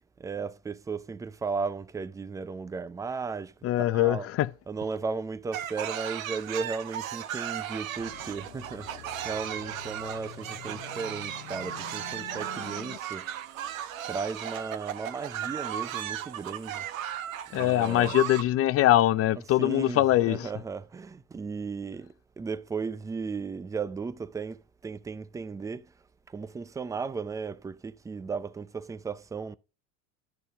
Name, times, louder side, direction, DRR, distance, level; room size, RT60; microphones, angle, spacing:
voice 1, 0.2-4.3 4.7-13.3 14.1-16.9 17.5-18.3 19.3-25.9 26.3-29.6, right 5 dB, 10° right, 0.4 m, -35 dB
voice 2, 3.6-4.5 17.5-20.5, left 14 dB, 35° left, 0.6 m, -23 dB
sound 1, 5.5-18.4, right 10 dB, 90° right, 1.0 m, -36 dB
sound 2, 8.0-13.0, left 12 dB, 85° left, 0.9 m, -46 dB
11.0 x 4.7 x 5.4 m
supercardioid pair, 105°, 39 cm